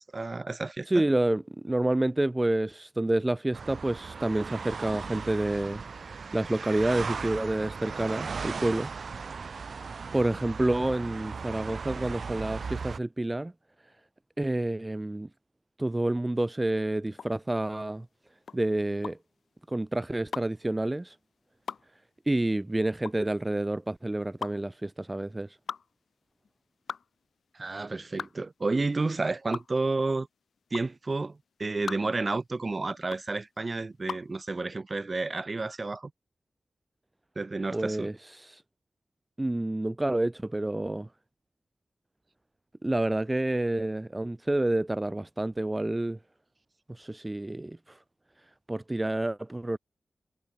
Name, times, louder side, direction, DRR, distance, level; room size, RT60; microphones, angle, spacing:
voice 1, 0.0-1.0 27.5-30.3 30.7-36.1 37.3-38.1, right 3 dB, 35° right, 1.4 m, -31 dB
voice 2, 0.9-8.9 10.1-13.5 14.4-15.3 15.8-18.1 18.5-19.2 19.7-21.2 22.3-25.6 37.7-38.6 39.4-41.1 42.8-46.2 46.9-48.0 48.7-49.8, right 1 dB, 20° right, 0.8 m, -29 dB
sound 1, 3.5-13.0, right 5 dB, 65° right, 2.2 m, -37 dB
sound 2, 17.1-34.4, left 6 dB, 80° left, 2.5 m, -41 dB
wide cardioid pair, 75°, 0 cm